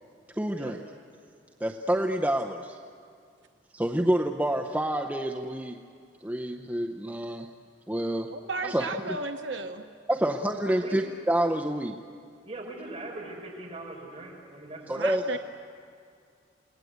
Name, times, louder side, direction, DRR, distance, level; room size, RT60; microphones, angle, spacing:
voice 1, 0.4-0.8 1.6-2.8 3.7-5.8 6.2-7.5 7.9-8.3 8.6-9.2 10.1-12.0 14.9-15.2, right 1 dB, 10° right, 2 dB, 0.7 m, -28 dB
voice 2, 8.3-9.8 15.0-15.4, right 3 dB, 85° right, 6 dB, 0.9 m, -34 dB
voice 3, 12.4-15.4, right 2 dB, 30° right, -2 dB, 5.8 m, -41 dB
28.5 x 19.5 x 8.1 m, 2.3 s
head